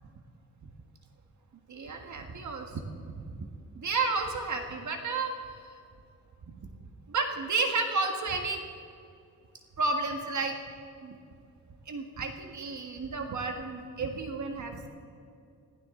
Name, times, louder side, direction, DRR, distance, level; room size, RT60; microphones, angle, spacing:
voice 1, 1.7-3.0 3.2-3.5 3.7-5.3 5.7-5.8 6.5-6.7 7.1-8.6 9.8-10.5 11.0-11.2 11.9-14.9, right 3 dB, 55° right, 4 dB, 1.7 m, -32 dB
20.5 x 15.5 x 3.8 m, 2.5 s
wide cardioid pair, 115°, 35 cm